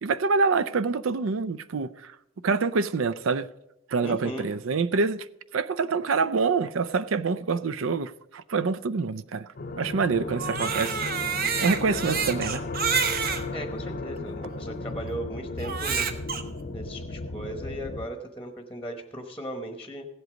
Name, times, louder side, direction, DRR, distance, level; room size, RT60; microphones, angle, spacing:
voice 1, 0.0-2.1 2.4-3.5 3.9-5.3 5.5-9.5 9.8-11.0 11.6-12.6, right 4 dB, 75° right, 0.5 m, -26 dB
voice 2, 4.0-4.5 13.5-16.1 16.7-20.1, equal, 5° left, 1.0 m, -37 dB
sound 1, 9.6-18.1, left 2 dB, 45° left, 0.7 m, -35 dB
Crying sobbing, 10.3-13.4 14.2-14.3 15.6-16.4, right 6 dB, 50° right, 0.9 m, -28 dB
16.0 x 7.9 x 5.1 m
head